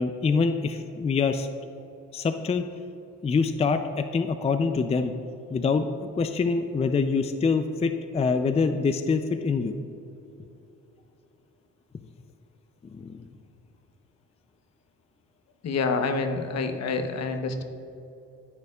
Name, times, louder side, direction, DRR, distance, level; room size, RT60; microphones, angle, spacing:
voice 1, 0.0-1.5 2.1-2.6 3.2-5.1 5.5-9.7 12.9-13.3, left 4 dB, 20° left, 8 dB, 0.4 m, -25 dB
voice 2, 15.6-17.6, left 4 dB, 60° left, 6 dB, 0.9 m, -27 dB
16.5 x 6.7 x 2.4 m, 2.7 s
cardioid pair, 90°, 30 cm